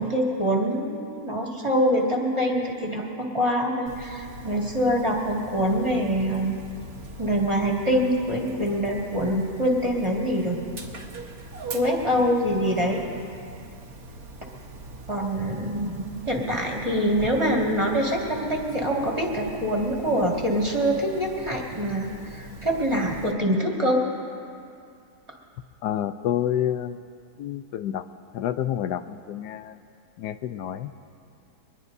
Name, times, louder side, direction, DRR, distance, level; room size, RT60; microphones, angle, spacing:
voice 1, 0.0-6.6 7.2-10.6 11.7-13.0 15.1-24.0, equal, 20° right, -2 dB, 2.0 m, -25 dB
Dog, 3.9-23.3, right 2 dB, 65° right, 1.8 m, -42 dB
voice 2, 25.8-27.0 27.4-28.0 28.3-29.7 30.2-30.9, left 10 dB, 85° left, 10 dB, 1.2 m, -28 dB
23.0 x 21.0 x 2.7 m, 2.4 s
omnidirectional pair, 1.7 m